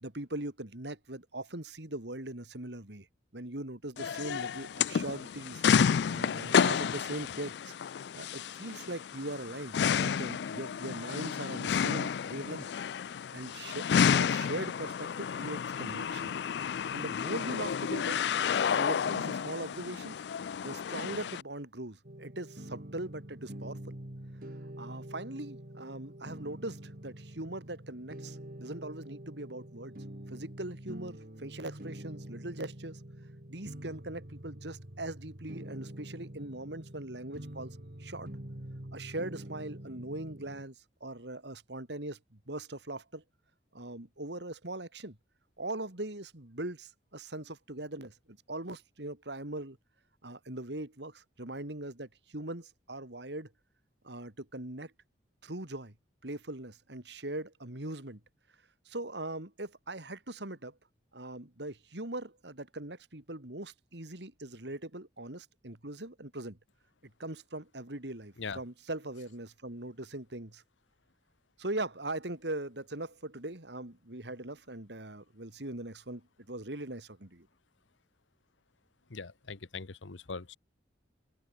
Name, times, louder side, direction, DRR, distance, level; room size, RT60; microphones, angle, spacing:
voice 1, 0.0-3.1 3.3-5.6 6.1-7.7 8.1-12.7 13.3-16.3 16.9-18.2 18.7-20.2 20.6-23.9 24.8-30.0 30.3-33.0 33.5-38.3 38.9-40.7 41.0-43.2 43.7-45.2 45.6-49.8 50.2-53.5 54.0-54.9 55.4-55.9 56.2-58.2 58.8-60.8 61.1-66.6 67.0-70.6 71.6-77.5, right 2 dB, 65° right, 3.0 m, -40 dB
sound 1, 4.0-21.4, left 7 dB, 65° left, 0.3 m, -31 dB
sound 2, 22.0-40.6, right 1 dB, 50° right, 2.4 m, -46 dB
voice 2, 79.1-80.6, left 4 dB, 90° left, 1.1 m, -41 dB
head